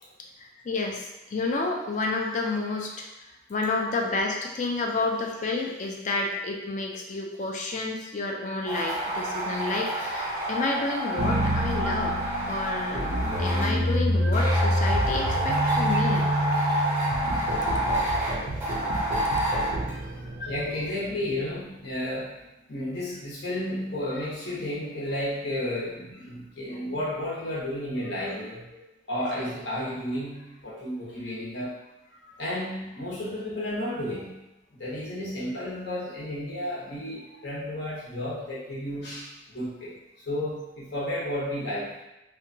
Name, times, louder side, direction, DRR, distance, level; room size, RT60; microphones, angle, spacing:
voice 1, 0.4-3.0 3.5-12.2 12.5-13.0 13.4-16.3, left 3 dB, 40° left, 1 dB, 0.4 m, -30 dB
sound 1, 8.7-13.7 14.3-19.7, right 1 dB, 10° right, 0.8 m, -28 dB
sound 2, 11.2-21.3, equal, 50° right, 0.4 m, -28 dB
voice 2, 19.9-31.8 32.1-34.3 34.7-42.0, left 1 dB, 60° left, -6 dB, 0.8 m, -33 dB
2.8 x 2.2 x 2.6 m, 0.98 s
head